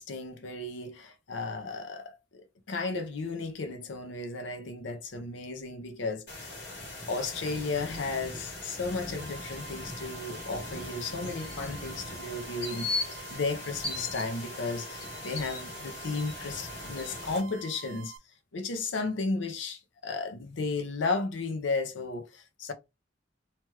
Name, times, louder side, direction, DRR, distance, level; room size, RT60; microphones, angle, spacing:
voice 1, 0.0-6.5 7.1-18.1 18.5-22.7, left 3 dB, 80° left, 0.6 m, -34 dB
sound 1, 6.3-17.4, left 2 dB, 60° left, 1.5 m, -39 dB
sound 2, 9.2-18.2, right 8 dB, 85° right, 0.4 m, -48 dB
2.9 x 2.3 x 3.2 m
head